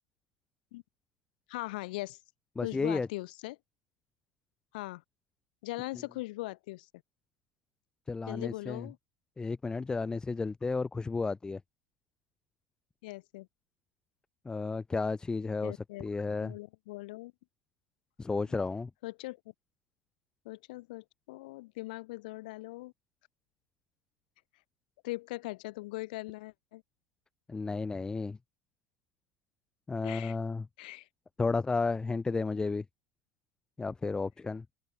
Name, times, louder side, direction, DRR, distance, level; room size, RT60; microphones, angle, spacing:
voice 1, 1.5-2.2 2.6-3.6 4.7-5.0 5.6-6.9 8.3-9.0 13.0-13.5 15.6-16.1 16.4-17.3 19.0-19.4 20.4-22.9 25.0-26.8 30.0-30.3 30.8-31.1, left 21 dB, 60° left, 1.2 m, -40 dB
voice 2, 2.6-3.1 8.1-8.9 9.4-11.6 14.4-16.5 18.2-18.9 27.5-28.4 29.9-30.7 31.4-32.8 33.8-34.6, left 4 dB, 15° left, 0.9 m, -32 dB
open air
figure-of-eight pair, 75°, 5 cm